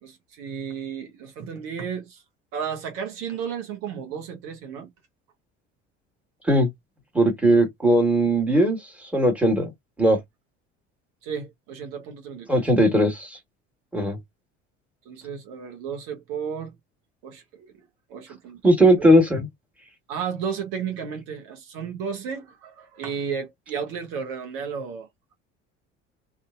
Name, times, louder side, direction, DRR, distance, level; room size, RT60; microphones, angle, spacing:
voice 1, 0.0-2.2 2.5-4.9 11.2-12.6 15.0-16.7 17.2-17.8 18.1-18.8 20.1-25.3, right 7 dB, 60° right, 1.0 m, -33 dB
voice 2, 7.1-8.8 9.1-9.7 10.0-10.2 12.5-13.4 13.9-14.2 18.6-19.5, right 1 dB, 5° right, 1.4 m, -18 dB
2.6 x 2.5 x 2.4 m
hypercardioid pair, 65°, 36 cm